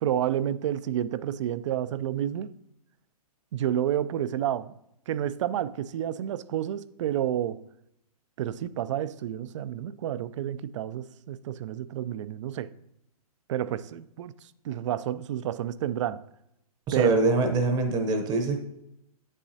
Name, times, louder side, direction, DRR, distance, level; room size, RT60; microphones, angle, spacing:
voice 1, 0.0-2.5 3.5-4.7 5.1-7.6 8.4-12.7 13.5-14.3 14.6-16.2 16.9-17.1, right 11 dB, 50° right, 0.4 m, -30 dB
voice 2, 16.9-18.6, right 3 dB, 20° right, 0.8 m, -24 dB
8.1 x 7.3 x 2.7 m
hypercardioid pair, 130°, 20 cm